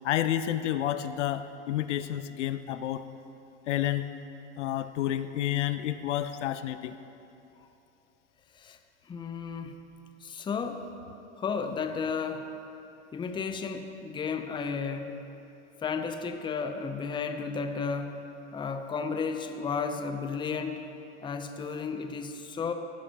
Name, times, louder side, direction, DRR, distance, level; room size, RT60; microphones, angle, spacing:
voice 1, 0.0-3.0 3.7-4.1 4.6-6.9, left 12 dB, 75° left, 11 dB, 0.6 m, -30 dB
voice 2, 9.1-9.8 10.2-10.9 11.4-12.5 13.1-15.1 15.8-18.1 18.5-20.9 21.2-22.7, left 5 dB, 15° left, 7 dB, 0.6 m, -33 dB
16.5 x 11.0 x 2.9 m, 2.8 s
hypercardioid pair, 110°, 36 cm